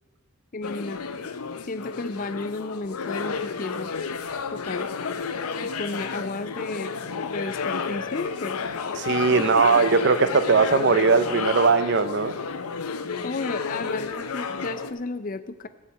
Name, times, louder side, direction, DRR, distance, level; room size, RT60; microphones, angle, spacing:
voice 1, 0.5-1.0 1.6-3.9 4.5-4.9 5.6-8.6 9.4-9.8 13.2-15.7, left 3 dB, 40° left, 12 dB, 0.5 m, -33 dB
sound 1, 0.6-14.9, left 5 dB, 85° left, 0.7 m, -31 dB
voice 2, 8.9-12.4, right 4 dB, 55° right, 12 dB, 0.6 m, -20 dB
13.5 x 4.9 x 8.2 m, 1.3 s
head